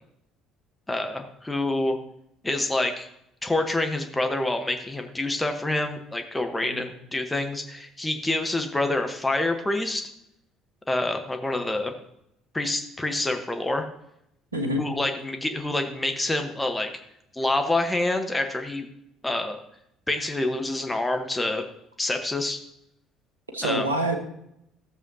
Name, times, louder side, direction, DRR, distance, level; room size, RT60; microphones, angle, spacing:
voice 1, 0.9-2.0 2.4-3.1 3.4-10.1 10.9-11.9 12.5-13.8 14.8-16.9 17.3-18.9 19.2-19.6 20.1-21.6 22.0-22.6 23.6-23.8, left 2 dB, 15° left, 5 dB, 1.1 m, -27 dB
voice 2, 14.5-14.8 23.5-24.2, right 1 dB, 90° right, 3 dB, 1.2 m, -26 dB
14.0 x 7.2 x 2.8 m, 0.78 s
figure-of-eight pair, 55°, 0 cm